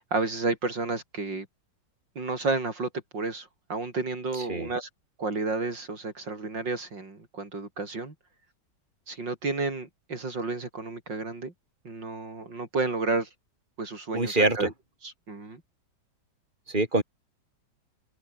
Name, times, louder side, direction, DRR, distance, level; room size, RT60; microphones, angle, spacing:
voice 1, 0.0-1.5 2.2-4.9 5.2-8.1 9.1-11.5 11.9-13.3 13.8-14.7 15.3-15.6, right 3 dB, 75° right, 5.2 m, -31 dB
voice 2, 4.3-4.7 14.1-14.7 16.7-17.0, right 2 dB, 25° right, 5.2 m, -25 dB
open air
omnidirectional pair, 2.0 m